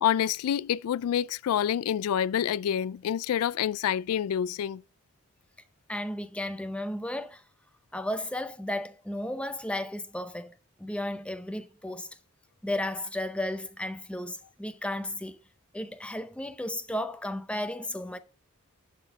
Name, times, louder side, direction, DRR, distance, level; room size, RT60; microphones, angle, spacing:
voice 1, 0.0-4.8, left 9 dB, 85° left, 0.3 m, -27 dB
voice 2, 5.9-7.4 7.9-10.5 10.8-12.1 12.6-15.4 15.7-18.2, left 1 dB, 5° left, 0.5 m, -34 dB
11.5 x 4.3 x 5.4 m
head